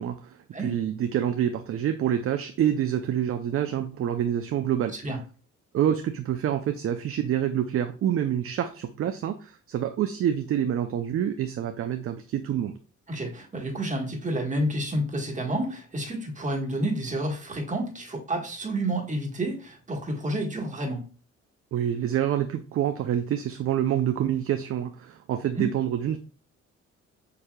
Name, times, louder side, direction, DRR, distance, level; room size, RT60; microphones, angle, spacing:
voice 1, 0.0-5.0 5.7-12.7 21.7-26.2, right 10 dB, 50° right, 8 dB, 0.4 m, -27 dB
voice 2, 13.1-21.0 25.5-25.6, right 1 dB, 25° right, 0 dB, 1.5 m, -30 dB
6.6 x 2.7 x 2.2 m, 0.38 s
cardioid pair, 90°, 30 cm